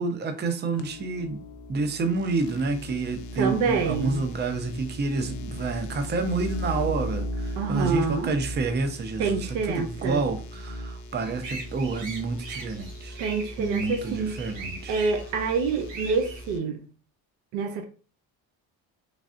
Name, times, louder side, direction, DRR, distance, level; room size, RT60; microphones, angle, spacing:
voice 1, 0.0-1.4 1.7-13.2 13.6-15.0, right 3 dB, 25° right, 0.5 m, -29 dB
sound 1, 0.8-16.6, equal, 40° left, 0.5 m, -38 dB
voice 2, 3.4-4.2 7.6-8.3 9.2-10.2 13.2-14.3 14.9-16.8 17.5-17.9, right 5 dB, 85° right, 0.7 m, -27 dB
sound 2, 11.4-16.4, right 3 dB, 65° right, 1.0 m, -40 dB
3.3 x 2.3 x 2.4 m
supercardioid pair, 65°, 47 cm